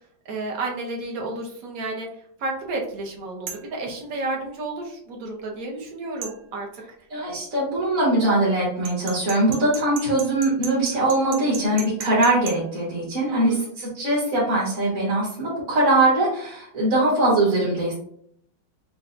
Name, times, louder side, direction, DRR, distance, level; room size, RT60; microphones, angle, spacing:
voice 1, 0.2-2.1 2.4-6.8 13.3-13.7, right 2 dB, 60° right, 0 dB, 1.0 m, -31 dB
sound 1, 3.5-3.7 6.2-6.4 8.8-12.6, right 7 dB, 90° right, 1.5 m, -35 dB
voice 2, 7.1-17.9, right 2 dB, 45° right, -7 dB, 1.4 m, -22 dB
5.6 x 2.2 x 2.5 m, 0.66 s
omnidirectional pair, 2.1 m